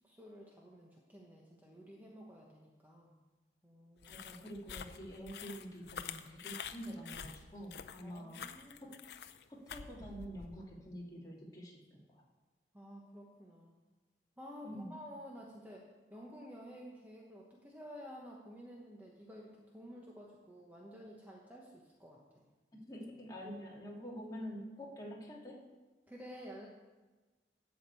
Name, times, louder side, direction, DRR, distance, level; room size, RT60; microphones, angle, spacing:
voice 1, 0.0-3.1 3.6-4.2 8.0-9.0 12.7-13.7 14.4-22.4 23.4-23.6 26.1-26.7, equal, 10° right, -2 dB, 1.1 m, -52 dB
sound 1, 4.0-10.6, left 7 dB, 65° left, 0.6 m, -47 dB
voice 2, 4.1-8.4 8.8-9.0 9.5-12.2 14.6-14.9 22.7-25.6, equal, 20° left, -4 dB, 2.5 m, -47 dB
11.5 x 5.3 x 8.3 m, 1.2 s
head